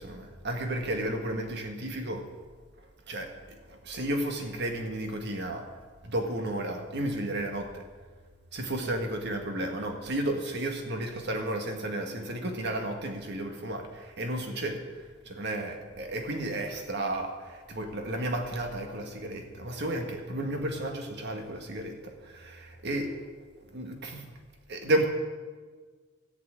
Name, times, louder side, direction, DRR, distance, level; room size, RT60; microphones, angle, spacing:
voice 1, 0.0-2.3 3.1-3.4 3.7-5.7 6.0-7.8 8.5-23.3 23.7-24.3 24.7-25.1, right 1 dB, 60° right, 4 dB, 1.6 m, -33 dB
13.5 x 5.9 x 8.6 m, 1.5 s
head